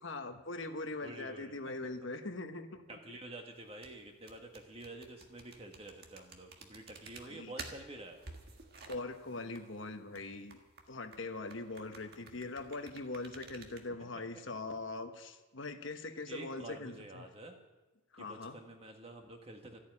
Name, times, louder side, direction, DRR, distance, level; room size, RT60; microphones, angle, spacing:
voice 1, 0.0-3.0 7.2-7.5 8.9-10.6 10.9-17.3 18.1-18.6, left 2 dB, 65° left, 7 dB, 1.2 m, -42 dB
voice 2, 1.0-1.5 2.9-8.2 16.3-17.6 18.2-19.8, right 2 dB, 30° right, 3 dB, 1.6 m, -49 dB
sound 1, 3.6-13.9, right 4 dB, 50° right, 1.7 m, -52 dB
14.0 x 8.5 x 9.8 m, 1.2 s
head